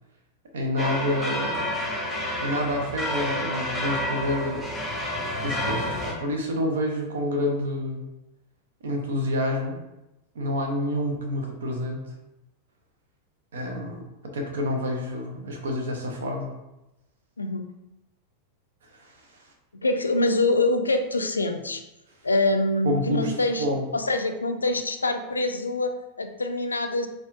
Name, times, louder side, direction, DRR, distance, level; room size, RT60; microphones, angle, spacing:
voice 1, 0.5-1.8 2.4-4.7 5.4-8.1 8.8-9.8 10.3-12.0 13.5-16.5 18.9-19.2 22.8-23.8, left 1 dB, 65° right, 2 dB, 0.7 m, -28 dB
sound 1, 0.8-6.1, left 1 dB, 10° left, 0.8 m, -29 dB
voice 2, 17.4-17.7 19.7-21.8 22.2-27.1, left 2 dB, 75° left, 7 dB, 0.3 m, -25 dB
4.2 x 2.4 x 2.6 m, 0.94 s
figure-of-eight pair, 90°, 0 cm